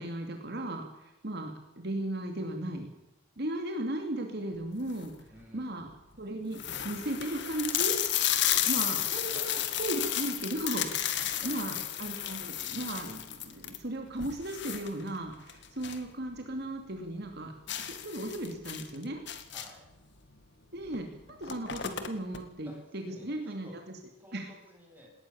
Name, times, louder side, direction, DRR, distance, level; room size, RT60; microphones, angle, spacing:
voice 1, 0.0-2.9 3.4-5.1 5.5-5.9 6.2-6.6 6.8-7.9 8.7-11.2 11.4-17.5 17.8-19.2 20.7-21.1 21.4-23.8 24.3-24.5, right 1 dB, 55° right, 4 dB, 2.5 m, -36 dB
sound 1, 4.7-5.2 5.8-5.9 6.1-6.2 6.5-16.1 16.4-16.5 16.9-17.0 17.7-19.9 20.9-21.0 21.3-22.4, left 11 dB, 60° left, 2.0 m, -32 dB
voice 2, 5.3-5.8 9.3-9.5 11.2-11.7 19.5-19.9 22.7-23.9 24.2-25.1, left 1 dB, 10° right, 0 dB, 7.1 m, -53 dB
19.5 x 18.5 x 7.0 m, 0.96 s
head